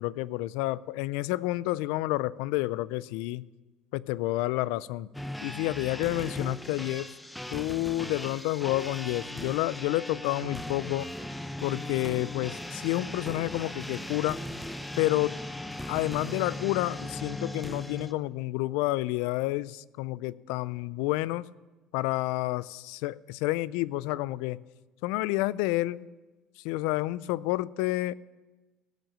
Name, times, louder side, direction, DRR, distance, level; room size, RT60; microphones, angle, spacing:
voice 1, 0.0-3.5 3.9-5.1 5.4-7.1 7.5-11.1 11.6-14.4 15.0-15.4 15.9-21.4 21.9-24.6 25.0-26.1 26.6-28.1, left 18 dB, 80° left, 21 dB, 0.3 m, -29 dB
sound 1, 5.1-18.1, left 1 dB, 5° left, 0.8 m, -38 dB
17.0 x 6.2 x 8.7 m, 1.2 s
supercardioid pair, 100°, 0 cm